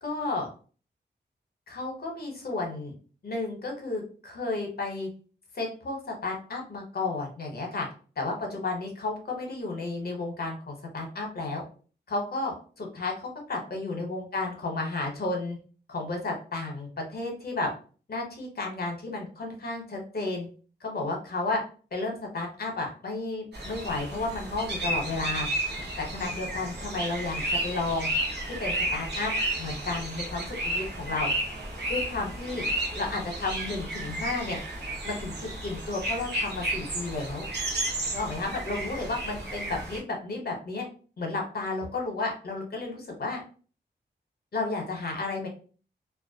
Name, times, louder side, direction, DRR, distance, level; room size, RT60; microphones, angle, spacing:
voice 1, 0.0-0.5 1.7-2.9 3.2-5.1 5.5-7.9 8.2-11.6 12.1-15.6 15.9-17.7 18.1-20.5 20.8-21.6 21.9-25.5 26.0-28.1 28.5-29.3 29.6-31.3 31.9-32.7 33.0-34.6 35.0-37.5 38.1-40.8 41.2-43.4 44.5-45.5, left 3 dB, 55° left, 1 dB, 0.9 m, -32 dB
sound 1, 23.5-40.0, right 1 dB, 65° right, 0.8 m, -32 dB
2.3 x 2.0 x 2.7 m, 0.39 s
cardioid pair, 70°, 19 cm